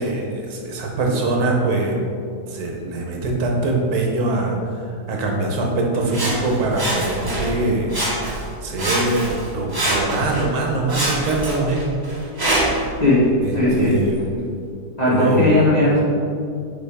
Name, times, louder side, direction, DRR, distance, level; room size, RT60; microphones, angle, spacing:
voice 1, 0.0-2.0 2.5-4.6 5.1-7.9 8.6-11.8 13.4-14.2 15.1-15.5, right 2 dB, 70° right, 0 dB, 1.3 m, -22 dB
Sawing, 6.1-7.6 7.9-8.5 8.8-10.5 10.9-12.9 13.5-13.6, right 1 dB, 20° right, 0.7 m, -24 dB
voice 2, 13.5-13.9 15.0-16.0, left 1 dB, 30° left, -8 dB, 1.0 m, -17 dB
7.6 x 4.1 x 3.4 m, 2.4 s
omnidirectional pair, 1.8 m